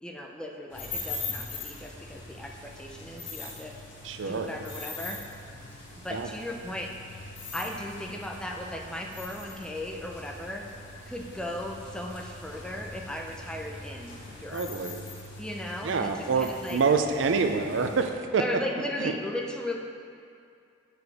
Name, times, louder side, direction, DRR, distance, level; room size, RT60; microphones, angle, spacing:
voice 1, 0.0-3.7 4.2-5.2 6.0-7.1 7.5-10.7 11.1-14.6 15.4-16.8 18.4-19.8, left 1 dB, 5° left, 1 dB, 0.5 m, -37 dB
sound 1, 0.7-18.1, left 3 dB, 65° left, 1.6 m, -42 dB
voice 2, 4.0-4.5 6.1-6.3 14.5-15.0 15.8-18.4 19.0-19.1, right 4 dB, 75° right, 6 dB, 0.5 m, -26 dB
8.1 x 4.9 x 4.8 m, 2.4 s
head